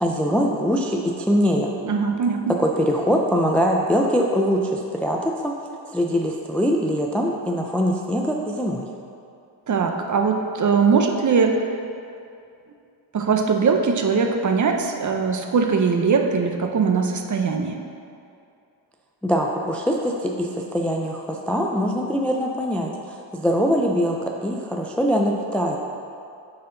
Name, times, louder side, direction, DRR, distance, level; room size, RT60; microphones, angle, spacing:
voice 1, 0.0-1.7 2.6-5.5 5.9-8.9 19.2-25.8, equal, 5° left, 1 dB, 0.3 m, -22 dB
voice 2, 1.8-2.5 9.7-11.7 13.1-17.8, right 5 dB, 40° right, 4 dB, 0.7 m, -21 dB
9.4 x 4.3 x 3.8 m, 2.5 s
cardioid pair, 100°, 49 cm